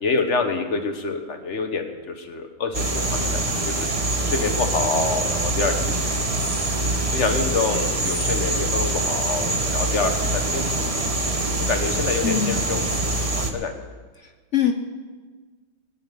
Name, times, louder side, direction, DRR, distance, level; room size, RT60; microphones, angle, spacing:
voice 1, 0.0-3.9 4.2-6.5 7.1-11.0 11.6-13.7, left 4 dB, 40° left, 6 dB, 1.4 m, -27 dB
sound 1, 2.7-13.5, right 2 dB, 20° right, 1.0 m, -24 dB
voice 2, 12.2-12.7 14.5-14.7, left 8 dB, 70° left, 6 dB, 0.6 m, -22 dB
21.5 x 9.8 x 5.4 m, 1.4 s
omnidirectional pair, 2.2 m